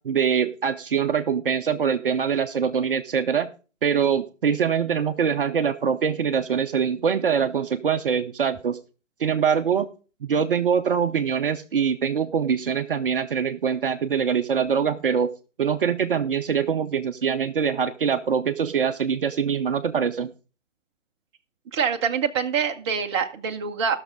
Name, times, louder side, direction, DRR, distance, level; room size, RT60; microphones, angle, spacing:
voice 1, 0.0-3.5 3.8-8.8 9.2-9.9 10.2-15.3 15.6-20.3, right 7 dB, 45° right, 7 dB, 0.8 m, -23 dB
voice 2, 21.7-24.0, right 7 dB, 20° right, 3 dB, 0.9 m, -25 dB
15.0 x 6.4 x 5.1 m, 0.35 s
figure-of-eight pair, 135°, 38 cm